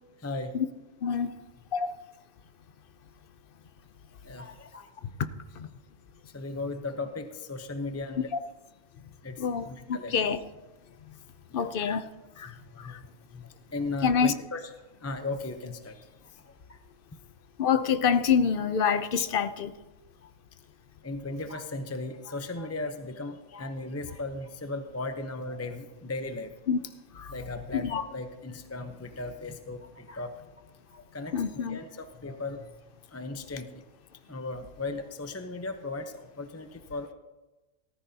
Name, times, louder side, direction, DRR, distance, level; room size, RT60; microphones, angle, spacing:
voice 1, 1.0-1.3 1.7-1.9 5.6-5.7 9.4-10.4 11.5-12.1 12.4-12.5 14.0-14.3 17.6-19.7 26.7-26.8 27.7-28.0 31.3-31.8, left 7 dB, 50° left, 0.8 m, -26 dB
voice 2, 4.3-4.9 6.3-8.3 9.2-9.3 9.7-10.2 11.5-11.7 12.5-12.9 13.3-13.4 13.7-14.7 15.0-16.0 21.0-26.5 27.3-30.3 31.1-32.7 33.1-33.8 34.3-37.1, left 2 dB, 15° left, 0.6 m, -36 dB
18.5 x 14.0 x 2.8 m
omnidirectional pair, 1.3 m